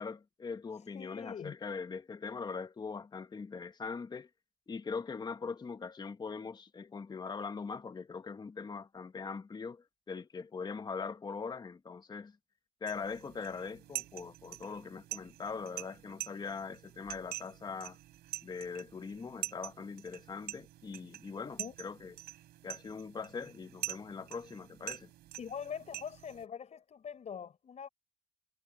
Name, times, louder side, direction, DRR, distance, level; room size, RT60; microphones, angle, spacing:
voice 1, 0.0-4.3 4.7-12.4 12.8-18.0 18.4-22.1 22.6-25.1, left 5 dB, 25° left, 1.3 m, -41 dB
voice 2, 0.9-1.5 21.6-21.7 25.4-27.9, left 7 dB, 40° left, 6.0 m, -43 dB
sound 1, 12.9-26.5, right 15 dB, 75° right, 4.2 m, -46 dB
cardioid pair, 110°, 17 cm